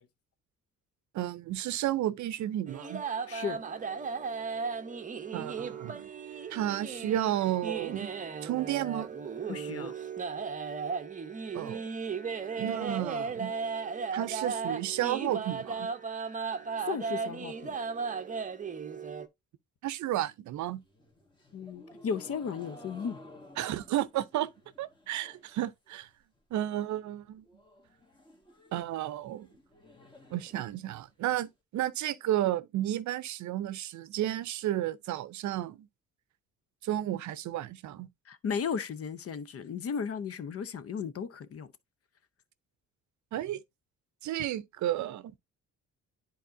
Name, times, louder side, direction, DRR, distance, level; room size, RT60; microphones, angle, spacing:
voice 1, 1.1-3.0 5.3-6.1 6.5-8.1 8.4-9.1 11.5-11.9 12.6-13.5 14.1-15.9 19.8-20.8 23.6-24.5 24.8-26.1 26.5-27.4 28.7-29.5 30.3-35.9 36.8-38.1 43.3-43.6 44.2-45.4, right 13 dB, 70° right, 0.6 m, -32 dB
sound 1, 2.7-19.3, right 5 dB, 25° right, 0.7 m, -36 dB
voice 2, 3.3-3.6 9.5-9.9 16.8-17.7 21.5-23.2 38.3-41.7, left 6 dB, 50° left, 0.8 m, -35 dB
sound 2, 20.5-25.6 25.9-26.4 26.7-26.8 27.0-27.1 27.4-31.4, left 1 dB, 15° left, 1.6 m, -54 dB
10.0 x 4.2 x 2.6 m
cardioid pair, 90°, 30 cm